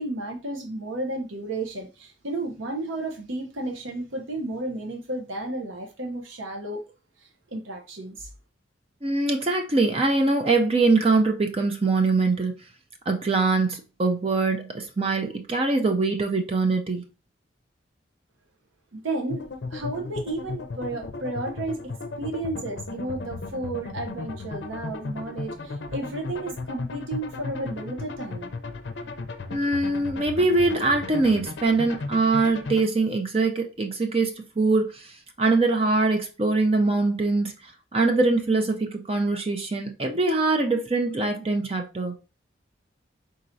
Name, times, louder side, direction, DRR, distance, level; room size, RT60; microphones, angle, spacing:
voice 1, 0.0-6.9 7.2-8.3 18.9-21.8 22.2-28.5, right 2 dB, 85° right, 0.8 m, -33 dB
voice 2, 9.0-12.5 13.1-17.0 29.5-37.5 37.9-42.1, right 3 dB, 30° right, 0.5 m, -23 dB
sound 1, 19.3-32.8, left 3 dB, 65° left, 0.5 m, -35 dB
4.4 x 3.9 x 2.6 m
head